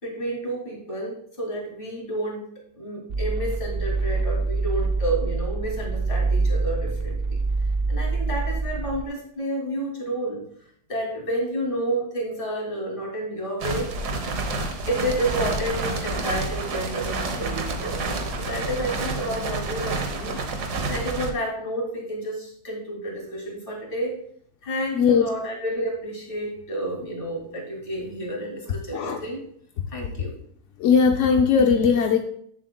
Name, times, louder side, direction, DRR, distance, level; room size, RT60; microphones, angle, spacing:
voice 1, 0.0-2.4 2.8-7.4 7.9-10.4 10.9-14.2 14.9-20.4 20.9-24.1 24.6-29.4 29.9-30.3, right 1 dB, 30° left, -2 dB, 2.9 m, -30 dB
sound 1, 3.1-9.0, right 3 dB, 55° right, 1.0 m, -25 dB
sound 2, 13.6-21.3, right 3 dB, 75° right, 1.6 m, -29 dB
voice 2, 24.9-25.3 28.9-29.2 30.8-32.2, left 6 dB, 65° left, 4 dB, 0.8 m, -19 dB
14.5 x 7.3 x 2.3 m, 0.66 s
omnidirectional pair, 1.8 m